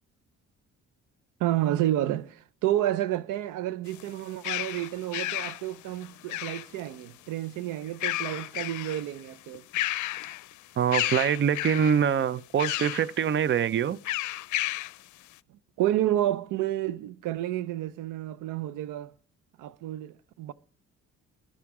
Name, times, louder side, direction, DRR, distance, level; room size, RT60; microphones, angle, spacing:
voice 1, 1.4-9.6 15.8-19.1 19.6-20.5, right 13 dB, 90° right, 0.6 m, -30 dB
sound 1, 3.9-7.0 7.8-9.1 9.5-10.5 10.9-12.0 12.6-13.1 14.0-15.0, left 16 dB, 75° left, 0.5 m, -32 dB
voice 2, 10.8-14.0, right 8 dB, 40° right, 0.5 m, -24 dB
15.0 x 11.5 x 4.7 m
cardioid pair, 90°, 30 cm